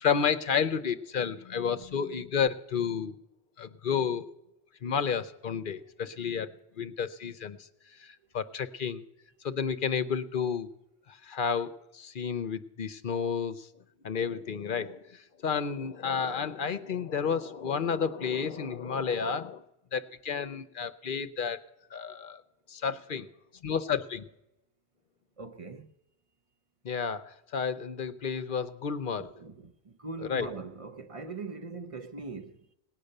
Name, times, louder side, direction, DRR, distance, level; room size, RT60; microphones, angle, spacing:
voice 1, 0.0-3.2 3.6-4.3 4.8-6.5 6.8-7.6 8.0-9.0 9.4-10.7 11.1-13.7 14.0-19.6 19.9-21.6 21.9-22.4 22.7-23.3 23.6-24.2 26.8-29.3 30.3-30.5, left 6 dB, 55° left, 0.8 m, -31 dB
voice 2, 25.4-25.9 29.2-32.7, right 3 dB, 35° right, 0.8 m, -41 dB
18.5 x 10.0 x 6.6 m
omnidirectional pair, 1.1 m